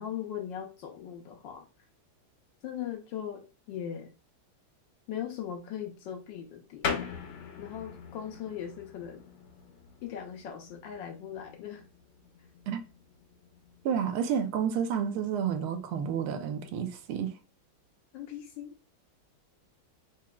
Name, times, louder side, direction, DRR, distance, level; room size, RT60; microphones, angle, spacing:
voice 1, 0.0-1.7 2.6-4.1 5.1-7.0 7.6-9.3 10.0-11.8 18.1-18.7, left 9 dB, 70° left, 1.2 m, -39 dB
sound 1, 6.8-17.0, left 6 dB, 85° left, 1.7 m, -42 dB
voice 2, 13.8-17.3, right 7 dB, 80° right, 1.5 m, -30 dB
4.7 x 2.9 x 2.2 m
omnidirectional pair, 2.4 m